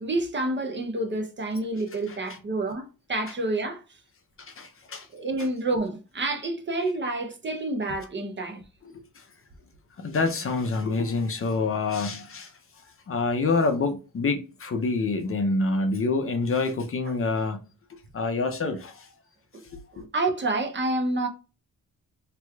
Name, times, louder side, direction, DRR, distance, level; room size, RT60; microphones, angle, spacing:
voice 1, 0.0-3.8 5.1-8.6 19.5-19.6 19.9-21.3, right 2 dB, 35° right, 0.6 m, -28 dB
voice 2, 4.6-5.1 10.0-12.5 13.1-17.6 18.1-19.1, left 3 dB, 40° left, 0.5 m, -26 dB
3.3 x 3.1 x 2.2 m
wide cardioid pair, 155°, 35 cm